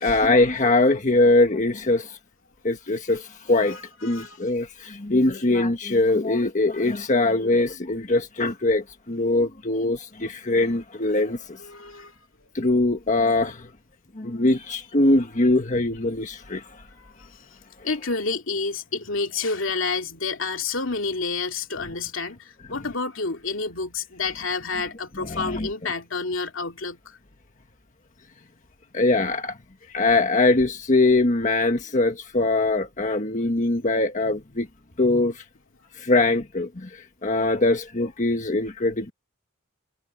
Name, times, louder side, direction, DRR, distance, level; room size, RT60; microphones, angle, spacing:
voice 1, 0.0-2.1 2.6-11.6 12.5-13.7 14.2-16.6 25.2-25.7 28.9-29.5 29.9-34.7 35.0-35.4 36.0-36.9 37.2-39.1, left 2 dB, 40° left, 1.5 m, -22 dB
voice 2, 3.6-4.4 11.6-12.1 14.6-14.7 17.0-17.1 17.8-27.2, left 4 dB, 75° left, 2.6 m, -29 dB
head